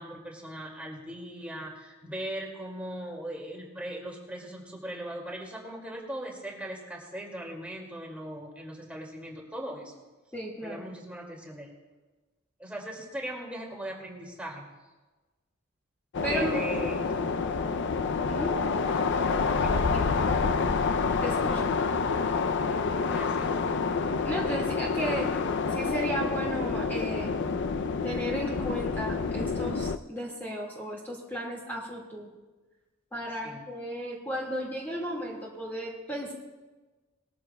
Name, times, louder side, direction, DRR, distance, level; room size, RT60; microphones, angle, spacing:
voice 1, 0.0-10.0 10.6-11.7 12.6-14.7 16.3-17.1 18.9-19.0 19.6-19.8 22.6-22.8 23.0-23.6 33.4-33.6, right 1 dB, 5° right, -2 dB, 2.2 m, -39 dB
voice 2, 10.3-10.8 16.2-16.6 18.3-18.6 21.2-21.6 24.2-25.3 25.7-27.3 28.0-32.3 33.1-36.3, right 1 dB, 10° left, -3 dB, 1.9 m, -34 dB
sound 1, 16.1-30.0, left 4 dB, 60° left, 0.5 m, -28 dB
20.0 x 14.0 x 2.3 m, 1.2 s
head